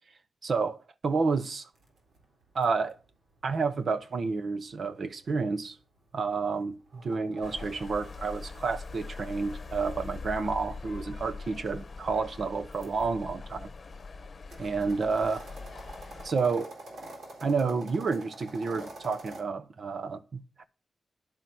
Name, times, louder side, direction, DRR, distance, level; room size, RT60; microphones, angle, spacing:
voice 1, 0.4-0.8 1.0-1.7 2.5-3.0 3.4-5.8 6.1-13.7 14.6-15.5 16.2-16.7 17.4-20.6, right 4 dB, 55° right, 0.9 m, -30 dB
sound 1, 1.8-7.7 8.9-13.1 13.6-19.4, right 2 dB, 75° right, 3.6 m, -48 dB
sound 2, 7.4-16.3, left 4 dB, 40° left, 1.1 m, -42 dB
10.5 x 5.7 x 7.8 m
wide cardioid pair, 150°, 0 cm